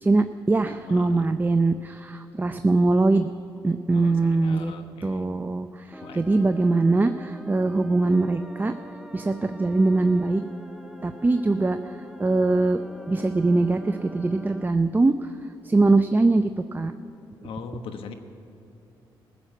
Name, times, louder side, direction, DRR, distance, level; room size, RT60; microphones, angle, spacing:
voice 1, 0.0-3.3 3.6-4.7 5.0-8.7 9.1-10.4 11.0-11.8 12.2-12.8 13.1-15.1 15.6-16.9, right 3 dB, 20° right, 9 dB, 0.5 m, -22 dB
voice 2, 0.8-1.3 3.9-5.2 6.0-6.2 17.4-18.1, left 5 dB, 80° left, 7 dB, 1.1 m, -40 dB
sound 1, 5.9-14.6, equal, 5° right, 1.0 m, -43 dB
15.0 x 7.3 x 9.1 m, 2.9 s
cardioid pair, 70°, 9 cm